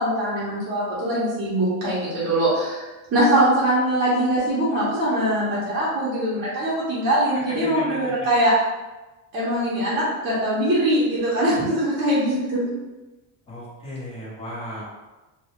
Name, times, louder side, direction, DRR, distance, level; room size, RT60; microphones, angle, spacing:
voice 1, 0.0-8.5 9.3-12.7, right 1 dB, 30° right, -9 dB, 0.6 m, -22 dB
voice 2, 7.3-7.8 13.5-14.8, left 1 dB, 15° left, -7 dB, 0.4 m, -35 dB
2.2 x 2.0 x 2.8 m, 1.1 s
cardioid pair, 155°, 43 cm